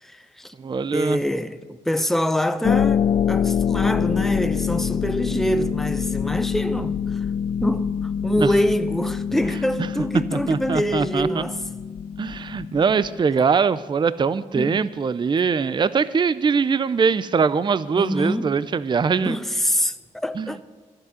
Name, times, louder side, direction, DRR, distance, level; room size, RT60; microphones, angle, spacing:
voice 1, 0.0-0.5 0.9-7.2 7.6-11.6 14.5-14.9 17.9-18.6 19.2-20.6, equal, ahead, 0.7 m, -25 dB
voice 2, 0.6-1.2 8.4-8.5 10.3-11.4 12.2-19.4 20.4-20.5, right 5 dB, 30° right, 0.5 m, -22 dB
Harp, 2.6-13.2, left 7 dB, 40° left, 0.4 m, -25 dB
11.5 x 7.6 x 9.4 m
cardioid pair, 70°, 15 cm